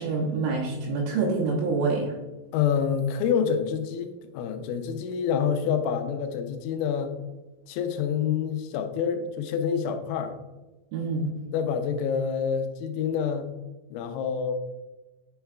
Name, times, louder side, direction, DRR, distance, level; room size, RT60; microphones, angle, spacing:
voice 1, 0.0-2.1 10.9-11.3, right 3 dB, 80° right, -3 dB, 3.2 m, -26 dB
voice 2, 2.5-7.1 7.7-10.4 11.5-13.5 13.9-14.5, left 7 dB, 85° left, 6 dB, 3.2 m, -27 dB
9.3 x 5.6 x 2.2 m, 1.1 s
omnidirectional pair, 6.0 m